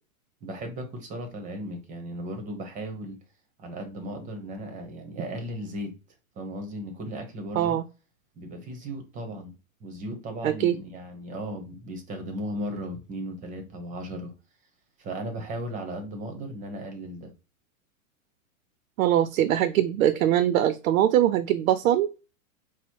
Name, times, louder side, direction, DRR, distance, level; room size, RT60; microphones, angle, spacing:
voice 1, 0.4-3.2 3.6-5.9 6.4-7.8 8.4-9.5 9.8-14.3 15.0-17.3, equal, 20° right, 0.8 m, -36 dB
voice 2, 10.4-10.8 19.0-22.1, right 11 dB, 70° right, 0.5 m, -22 dB
4.3 x 2.1 x 4.4 m
supercardioid pair, 150°, 42 cm